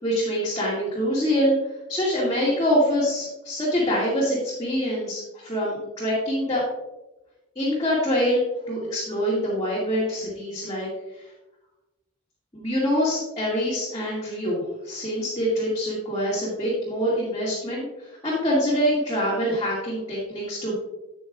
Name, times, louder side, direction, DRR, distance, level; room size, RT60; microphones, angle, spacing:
voice 1, 0.0-1.6 1.9-6.6 7.6-11.2 12.5-20.7, equal, 20° left, -9 dB, 2.3 m, -25 dB
9.0 x 8.6 x 2.5 m, 1.0 s
head